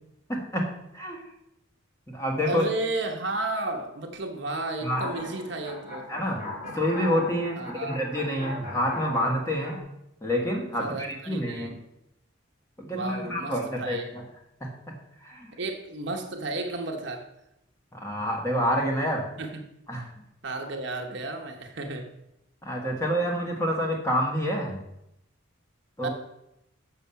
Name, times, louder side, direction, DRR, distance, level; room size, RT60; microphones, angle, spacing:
voice 1, 0.3-0.7 0.9-1.2 2.1-2.7 4.8-5.0 6.1-6.5 6.7-9.8 10.2-11.7 12.8-14.2 14.6-14.7 15.2-15.5 17.9-19.3 19.9-20.1 22.6-24.8 26.0-26.1, equal, 15° left, -1 dB, 1.4 m, -28 dB
voice 2, 2.4-6.1 6.6-6.7 7.6-8.0 10.8-11.7 12.9-14.0 15.6-17.3 19.4-19.6 20.4-22.1 26.0-26.1, right 2 dB, 60° right, 4 dB, 1.0 m, -33 dB
sound 1, 4.8-9.8, left 1 dB, 35° left, 2.0 m, -38 dB
6.9 x 6.2 x 5.7 m, 0.83 s
head